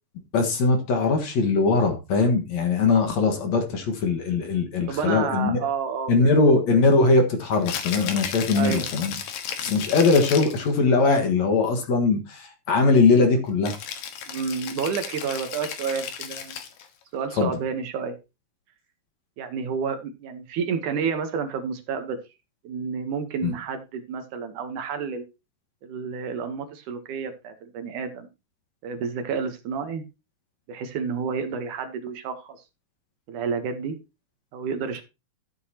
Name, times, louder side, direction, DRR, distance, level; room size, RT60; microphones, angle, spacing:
voice 1, 0.3-5.6 6.1-9.1 9.6-13.8 17.4-17.5 23.4-23.5, left 3 dB, 55° left, 5 dB, 2.5 m, -21 dB
voice 2, 4.9-6.4 8.5-8.8 14.3-16.6 17.1-18.2 19.4-22.2 22.6-25.2 25.8-28.3 28.8-30.1 30.7-32.6 33.3-34.0 34.5-35.0, right 6 dB, 70° right, 8 dB, 2.4 m, -30 dB
Rattle (instrument), 7.5-10.7 13.6-16.9, left 8 dB, 80° left, 3.1 m, -34 dB
13.5 x 8.0 x 2.8 m, 0.26 s
omnidirectional pair, 4.0 m